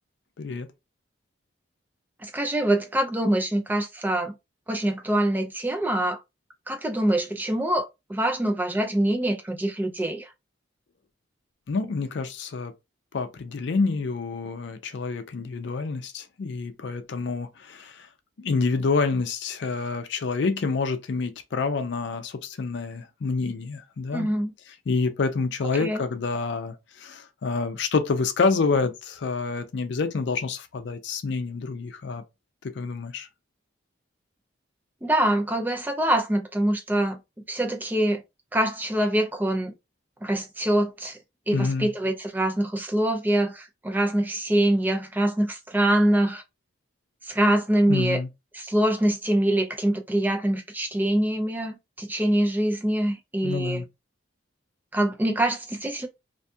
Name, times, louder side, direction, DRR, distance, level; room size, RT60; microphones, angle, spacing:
voice 1, 2.2-4.3 4.7-6.2 6.7-10.3 24.1-24.5 25.8-26.0 35.0-37.2 37.5-38.2 38.5-39.7 40.2-41.2 41.5-46.4 47.3-48.2 48.5-53.8 54.9-56.1, right 1 dB, 10° right, 0.3 m, -24 dB
voice 2, 11.7-12.7 13.1-18.1 18.4-24.3 24.9-32.2 32.8-33.3 41.5-41.9 47.9-48.3 53.4-53.9, left 4 dB, 65° left, 0.4 m, -27 dB
2.5 x 2.2 x 2.6 m
head